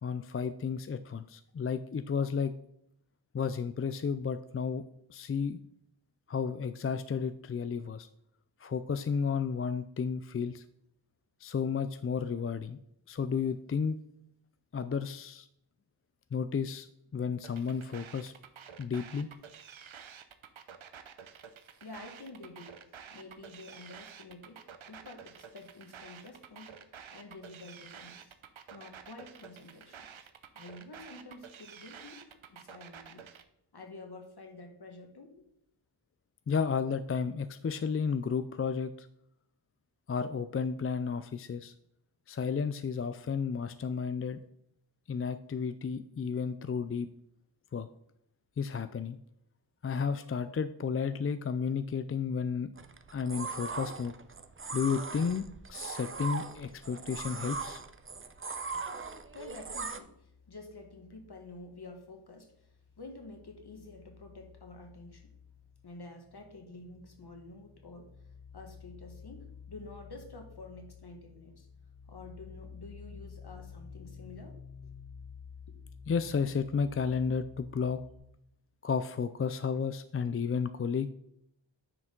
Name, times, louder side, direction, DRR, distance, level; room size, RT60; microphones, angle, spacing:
voice 1, 0.0-2.5 3.3-4.8 5.1-5.6 6.3-8.1 8.6-10.6 11.4-12.8 13.1-14.0 14.7-15.5 16.3-16.9 17.1-18.3 18.8-19.3 36.5-39.1 40.1-41.7 42.3-44.4 45.1-47.1 47.7-47.9 48.6-49.2 49.8-52.7 53.1-54.1 54.7-57.8 76.1-78.0 78.8-81.1, left 6 dB, 30° left, 12 dB, 0.4 m, -32 dB
sound 1, 17.4-33.4, right 7 dB, 75° right, 0.8 m, -50 dB
voice 2, 21.8-28.4 28.7-30.1 30.5-33.3 33.7-35.5 59.3-62.7 63.0-65.3 65.8-71.7 72.1-74.9, left 2 dB, 50° left, 4 dB, 1.8 m, -49 dB
sound 2, 52.8-60.0, right 4 dB, 25° right, 0.7 m, -39 dB
sound 3, 58.3-62.1 62.4-78.2, left 6 dB, 50° right, 2.5 m, -52 dB
9.6 x 4.8 x 3.8 m, 0.75 s
cardioid pair, 55°, 48 cm